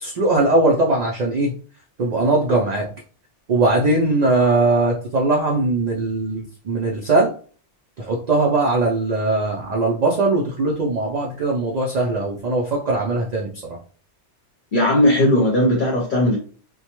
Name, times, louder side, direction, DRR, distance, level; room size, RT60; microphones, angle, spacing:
voice 1, 0.0-1.5 2.0-2.9 3.5-7.3 8.0-13.5, right 2 dB, 60° right, -1 dB, 0.4 m, -20 dB
voice 2, 14.7-16.4, left 1 dB, 50° left, -3 dB, 0.7 m, -17 dB
2.2 x 2.1 x 2.9 m, 0.41 s
omnidirectional pair, 1.2 m